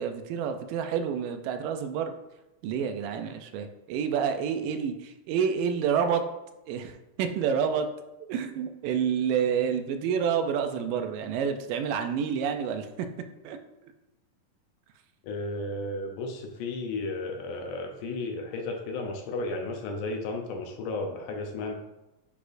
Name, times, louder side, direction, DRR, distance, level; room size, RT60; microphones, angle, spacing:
voice 1, 0.0-2.2 2.6-6.2 6.7-7.9 8.3-13.1 13.4-13.6, right 7 dB, 85° right, 7 dB, 2.2 m, -28 dB
voice 2, 15.2-21.7, left 2 dB, 75° left, 3 dB, 2.1 m, -33 dB
10.0 x 4.1 x 2.6 m, 0.96 s
omnidirectional pair, 3.9 m